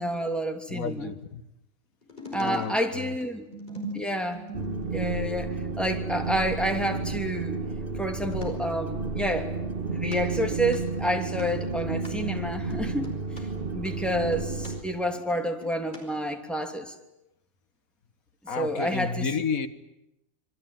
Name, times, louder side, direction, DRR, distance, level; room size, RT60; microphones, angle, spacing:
voice 1, 0.0-1.1 2.3-3.4 3.9-4.5 4.9-7.6 8.0-9.6 9.9-13.1 13.7-16.9 18.6-19.3, equal, ahead, 3 dB, 2.9 m, -29 dB
voice 2, 0.7-1.4 2.3-3.2 18.5-19.7, left 5 dB, 85° left, 11 dB, 1.8 m, -31 dB
sound 1, 2.0-5.1 8.1-8.5 10.1-10.2 10.6-10.8 11.4-11.5 12.0-12.1 12.7-13.4 13.8-14.7 15.1-16.0 16.3-16.4, left 1 dB, 35° left, 5.9 m, -41 dB
sound 2, 4.5-14.8, right 4 dB, 40° right, 2.2 m, -31 dB
27.5 x 23.0 x 9.2 m, 0.86 s
omnidirectional pair, 1.4 m